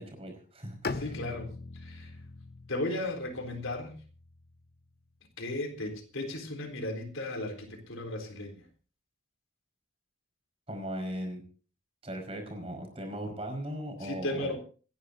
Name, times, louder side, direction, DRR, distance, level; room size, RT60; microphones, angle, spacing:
voice 1, 0.0-1.1 10.7-11.4 12.0-14.5, equal, 30° right, 4 dB, 5.0 m, -38 dB
Bowed string instrument, 0.8-4.8, left 3 dB, 50° left, 0.7 m, -41 dB
voice 2, 0.9-2.2 2.7-3.9 5.4-8.7 14.0-14.6, left 1 dB, 85° left, 5 dB, 3.8 m, -35 dB
28.0 x 11.0 x 2.7 m, 0.38 s
head